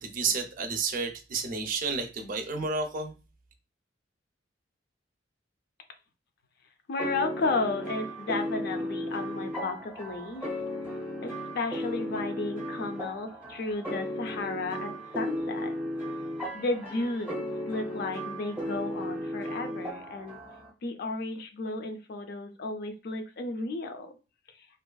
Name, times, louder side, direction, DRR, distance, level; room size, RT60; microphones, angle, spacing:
voice 1, 0.0-3.1, right 4 dB, 50° right, 0.5 m, -31 dB
voice 2, 6.9-10.4 11.2-15.7 16.5-20.4 20.8-24.2, left 3 dB, 60° left, 0.5 m, -33 dB
sound 1, 7.0-20.7, equal, 10° right, 0.8 m, -35 dB
2.5 x 2.3 x 2.2 m
head